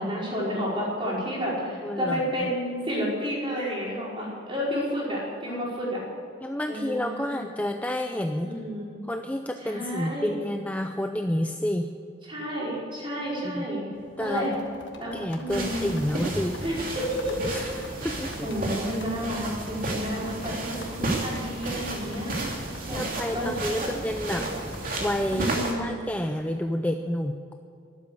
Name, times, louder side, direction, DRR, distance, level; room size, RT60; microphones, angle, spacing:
voice 1, 0.0-6.0 6.7-7.4 8.4-8.9 9.6-10.3 12.2-13.8 14.2-14.5 15.0-15.8 16.6-17.5 18.0-22.4 22.9-23.0 23.3-23.9 24.3-24.4 25.3-25.9, equal, 25° right, -5 dB, 5.0 m, -31 dB
voice 2, 1.8-2.5 5.4-5.6 6.4-8.5 9.1-11.9 13.4-13.7 14.2-14.6 15.1-16.6 17.5-18.3 20.8-21.1 22.9-24.5 25.0-25.5 25.8-27.5, left 1 dB, 10° left, 5 dB, 0.5 m, -30 dB
sound 1, 13.9-20.7, right 1 dB, 60° right, 1.6 m, -51 dB
sound 2, 14.3-25.4, left 4 dB, 60° left, 1.7 m, -48 dB
sound 3, 15.5-25.7, right 2 dB, 45° right, 2.9 m, -32 dB
13.0 x 12.0 x 8.4 m, 2.5 s
head